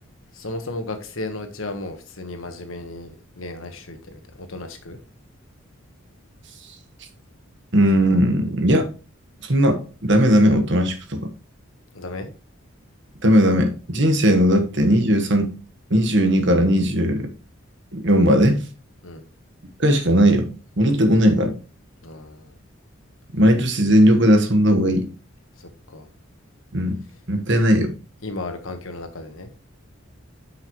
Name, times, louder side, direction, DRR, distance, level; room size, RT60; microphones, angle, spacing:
voice 1, 0.3-5.0 11.9-12.3 19.0-19.2 22.0-22.5 25.6-26.1 28.2-29.5, left 2 dB, 75° left, 1.3 m, -34 dB
voice 2, 7.7-8.9 9.4-11.2 13.2-15.5 15.9-17.3 17.9-18.6 19.8-20.5 20.8-21.6 23.3-25.1 26.7-27.0 27.3-27.9, equal, 60° right, 1.3 m, -17 dB
9.3 x 5.7 x 3.0 m
head